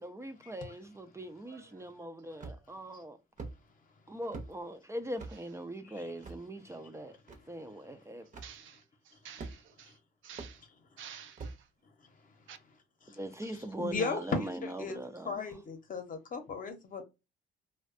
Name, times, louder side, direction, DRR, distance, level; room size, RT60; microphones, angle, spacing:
voice 1, 0.0-3.2 4.1-7.1 7.5-8.3 13.1-15.4, right 1 dB, 15° right, 0.4 m, -41 dB
voice 2, 1.5-1.9 5.3-5.4 8.4-10.0 10.2-10.6 11.0-11.7 12.5-12.6, right 9 dB, 75° right, 0.5 m, -51 dB
sound 1, 2.4-2.8 3.4-3.6 4.3-4.5 5.2-5.4 6.2-6.4 7.3-7.4 8.3-8.5 9.4-9.8 10.4-10.5 11.4-11.6, right 3 dB, 40° right, 0.7 m, -42 dB
voice 3, 13.5-17.0, left 4 dB, 45° left, 0.8 m, -37 dB
2.5 x 2.2 x 2.4 m
cardioid pair, 90°, 20 cm